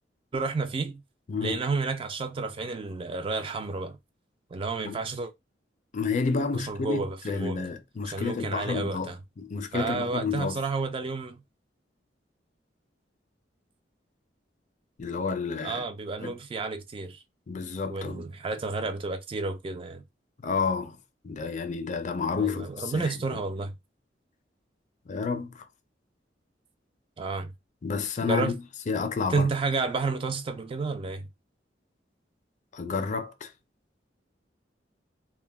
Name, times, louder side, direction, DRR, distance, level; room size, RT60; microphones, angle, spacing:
voice 1, 0.3-1.0 1.4-4.0 4.5-5.3 6.5-7.6 8.0-9.2 9.7-11.4 15.6-17.2 17.9-20.0 22.4-23.7 27.2-27.5 28.2-28.6 29.3-31.3, right 4 dB, 30° right, 0.3 m, -31 dB
voice 2, 1.3-1.6 4.8-5.0 5.9-10.6 15.0-15.8 16.2-16.3 17.5-18.2 20.4-21.0 21.2-23.1 25.1-25.6 27.8-29.5 32.7-33.5, left 5 dB, 45° left, 0.4 m, -30 dB
2.2 x 2.0 x 3.3 m
head